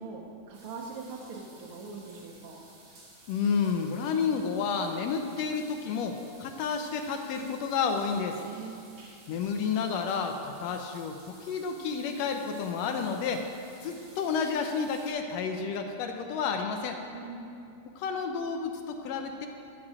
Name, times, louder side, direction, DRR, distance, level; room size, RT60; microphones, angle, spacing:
voice 1, 0.0-2.6 8.4-8.8 13.7-13.9 17.1-17.5, right 4 dB, 70° right, -2 dB, 1.3 m, -42 dB
sound 1, 0.5-15.1, right 2 dB, 90° right, 3.7 m, -55 dB
voice 2, 3.3-8.4 9.3-13.4 13.8-17.0 18.0-19.5, left 5 dB, 75° left, 5 dB, 1.6 m, -30 dB
12.0 x 7.4 x 4.9 m, 2.6 s
omnidirectional pair, 3.4 m